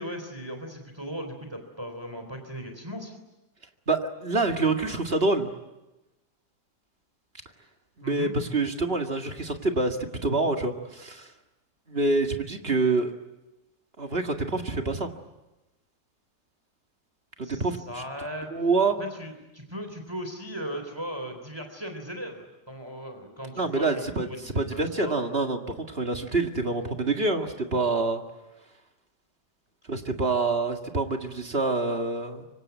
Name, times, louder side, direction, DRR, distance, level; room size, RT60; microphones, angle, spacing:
voice 1, 0.0-3.2 8.0-8.3 17.4-18.5 19.0-25.2, equal, 15° right, 5 dB, 3.7 m, -38 dB
voice 2, 3.9-5.5 8.0-11.3 11.9-13.1 14.0-15.1 17.4-17.8 18.5-19.0 23.6-24.3 24.5-28.2 29.9-32.4, right 3 dB, 35° right, 4 dB, 2.2 m, -26 dB
25.5 x 24.5 x 9.4 m, 1.0 s
omnidirectional pair, 1.8 m